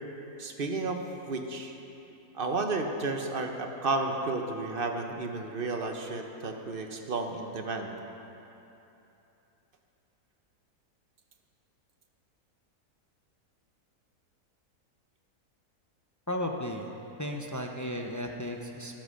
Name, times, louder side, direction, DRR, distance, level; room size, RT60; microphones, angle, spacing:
voice 1, 0.4-1.8 2.3-7.9, right 3 dB, 40° right, 4 dB, 1.0 m, -32 dB
voice 2, 16.3-16.9 17.2-19.0, left 1 dB, 20° left, 2 dB, 0.4 m, -34 dB
13.5 x 11.0 x 6.6 m, 3.0 s
omnidirectional pair, 1.6 m